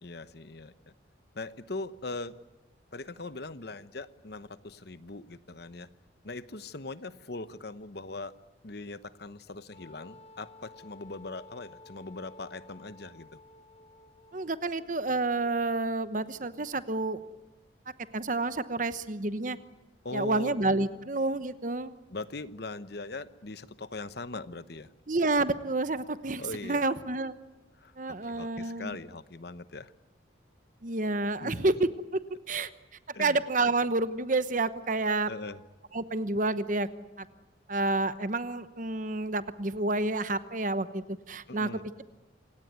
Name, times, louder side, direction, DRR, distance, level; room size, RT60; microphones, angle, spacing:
voice 1, 0.0-0.7 1.3-2.3 2.9-5.9 6.2-8.3 8.6-13.3 20.0-20.5 22.1-24.9 26.4-26.9 27.8-27.9 28.2-29.9 31.4-31.5 33.1-33.4 35.2-35.6 41.5-41.8, left 3 dB, 55° left, 14 dB, 1.0 m, -40 dB
Wind instrument woodwind instrument, 9.7-14.9, left 3 dB, 30° left, 1.9 m, -54 dB
voice 2, 14.3-17.2 18.1-19.6 20.1-21.9 25.1-27.4 28.0-29.0 30.8-32.7 33.2-35.3 35.9-36.9 37.7-41.7, right 2 dB, 40° right, 13 dB, 1.0 m, -29 dB
27.5 x 17.5 x 9.4 m, 1.1 s
head